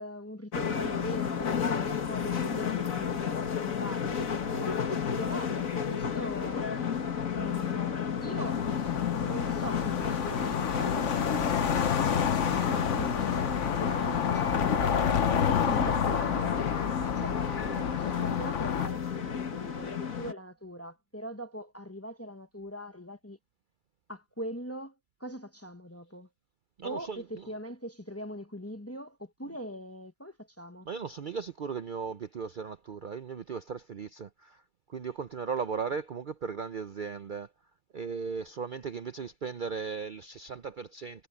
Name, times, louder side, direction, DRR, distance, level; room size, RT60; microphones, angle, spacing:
voice 1, 0.0-6.7 7.3-8.6 9.1-12.3 12.6-14.8 15.6-16.7 17.1-23.4 24.1-26.3 26.8-30.9, equal, 10° left, 0.9 m, -42 dB
sound 1, 0.5-20.3, left 7 dB, 80° left, 2.0 m, -32 dB
sound 2, 8.4-18.9, left 7 dB, 65° left, 1.4 m, -29 dB
voice 2, 26.8-27.6 29.4-29.6 30.8-34.6 34.9-37.5 37.9-41.3, right 5 dB, 50° right, 0.7 m, -37 dB
omnidirectional pair, 1.4 m